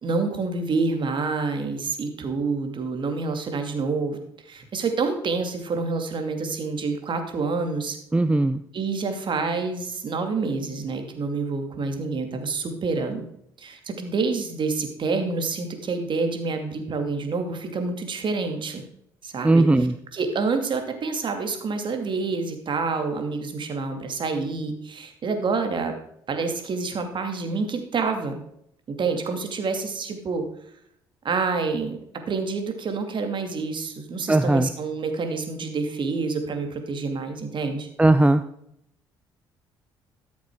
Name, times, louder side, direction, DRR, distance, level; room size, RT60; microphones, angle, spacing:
voice 1, 0.0-4.2 4.4-8.0 8.7-13.2 13.6-18.8 19.2-19.9 20.1-25.9 26.3-28.4 29.0-30.4 31.2-32.0 32.3-37.9, right 4 dB, 45° right, 6 dB, 2.5 m, -27 dB
voice 2, 8.1-8.6 19.4-19.9 34.3-34.7 38.0-38.4, right 2 dB, 10° right, 12 dB, 0.6 m, -18 dB
13.5 x 7.2 x 4.8 m, 0.72 s
hypercardioid pair, 60°, 11 cm